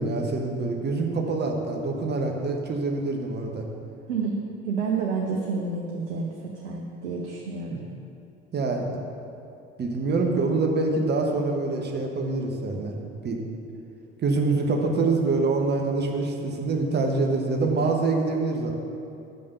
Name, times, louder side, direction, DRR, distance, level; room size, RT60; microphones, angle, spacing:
voice 1, 0.0-3.7 7.7-7.8 8.5-8.9 9.8-12.9 13.2-13.4 14.2-18.7, right 3 dB, 30° right, 2 dB, 1.1 m, -25 dB
voice 2, 4.1-7.8, right 4 dB, 70° right, 0 dB, 0.8 m, -29 dB
6.5 x 5.3 x 6.9 m, 2.7 s
figure-of-eight pair, 60°, 36 cm